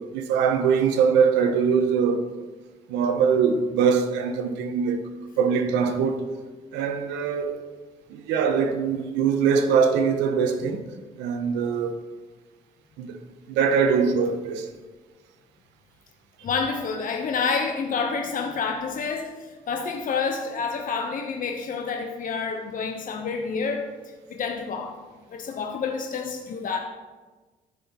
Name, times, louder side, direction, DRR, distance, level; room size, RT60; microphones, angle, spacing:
voice 1, 0.0-2.3 2.9-5.0 5.4-6.3 6.7-7.6 8.1-10.8 11.2-12.0 13.0-13.2 13.5-14.7, right 6 dB, 80° right, 0.8 m, -22 dB
voice 2, 16.4-23.9 24.3-25.0 25.3-26.8, left 5 dB, 50° left, 0.9 m, -28 dB
13.0 x 5.4 x 3.0 m
hypercardioid pair, 55°, 18 cm